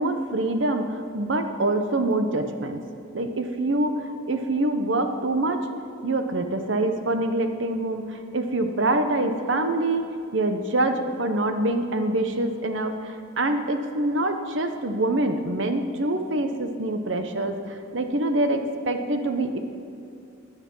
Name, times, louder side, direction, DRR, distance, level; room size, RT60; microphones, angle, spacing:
voice 1, 0.0-2.8 3.1-5.6 6.0-10.1 10.3-19.6, right 2 dB, 70° right, 7 dB, 1.0 m, -25 dB
15.5 x 10.0 x 5.5 m, 2.5 s
head